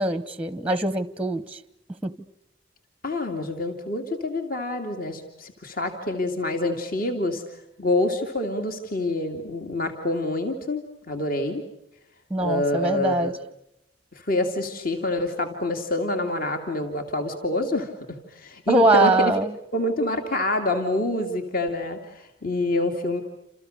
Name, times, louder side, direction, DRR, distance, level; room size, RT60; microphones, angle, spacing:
voice 1, 0.0-1.6 2.0-2.1 12.3-13.3 18.7-19.5, right 2 dB, 5° right, 14 dB, 1.0 m, -22 dB
voice 2, 3.0-7.4 7.8-11.6 12.4-13.4 14.1-19.3 19.7-23.2, left 1 dB, 45° left, 5 dB, 2.8 m, -26 dB
29.5 x 28.5 x 6.7 m, 0.83 s
head